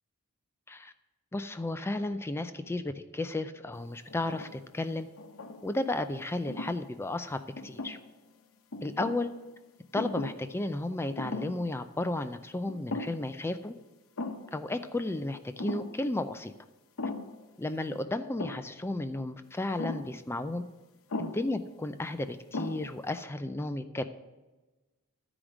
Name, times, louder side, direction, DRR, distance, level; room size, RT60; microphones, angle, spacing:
voice 1, 1.3-5.1 5.6-8.0 8.8-9.3 9.9-13.7 14.5-16.5 17.6-20.6 21.2-24.0, left 2 dB, 10° left, 9 dB, 0.4 m, -33 dB
sound 1, 4.1-4.7 5.2-5.9 6.5-6.8 7.6-8.3 8.7-9.3 10.0-10.5 10.7-10.8 11.2-11.7 12.0-12.1 12.7-13.4 13.6-13.7 14.2-14.6 15.6-16.0 17.0-17.4 18.4-18.8 19.8-20.2 21.1-21.5 22.1-22.2 22.5-23.0, left 2 dB, 65° left, 0.8 m, -38 dB
12.5 x 5.0 x 6.1 m, 1.1 s
head